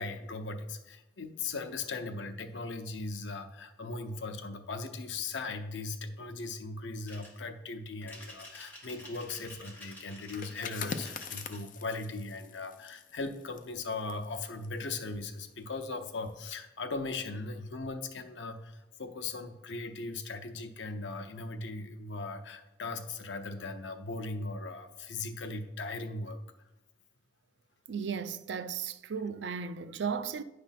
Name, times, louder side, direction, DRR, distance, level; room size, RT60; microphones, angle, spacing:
voice 1, 0.0-26.4, left 3 dB, 85° left, 0.7 m, -38 dB
sound 1, 7.1-7.4 8.0-11.6, left 1 dB, 10° left, 1.7 m, -50 dB
sound 2, 10.2-15.7 16.0-16.3, left 6 dB, 45° left, 0.5 m, -43 dB
voice 2, 27.9-30.4, right 6 dB, 75° right, 0.4 m, -35 dB
9.8 x 3.3 x 5.8 m
head